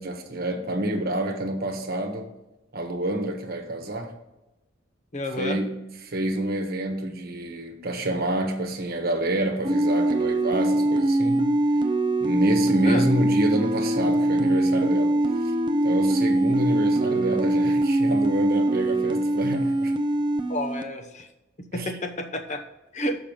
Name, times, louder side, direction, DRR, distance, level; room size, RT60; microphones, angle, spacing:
voice 1, 0.0-2.3 2.7-4.1 5.4-11.6 12.2-15.5 15.8-19.9 21.7-21.9, right 1 dB, 55° right, 1.2 m, -28 dB
voice 2, 5.1-5.6 12.8-13.0 20.5-21.3 21.7-22.6 22.9-23.2, left 1 dB, 40° left, 0.9 m, -30 dB
sound 1, 9.6-20.8, right 1 dB, 25° right, 0.6 m, -22 dB
6.8 x 5.7 x 7.4 m
head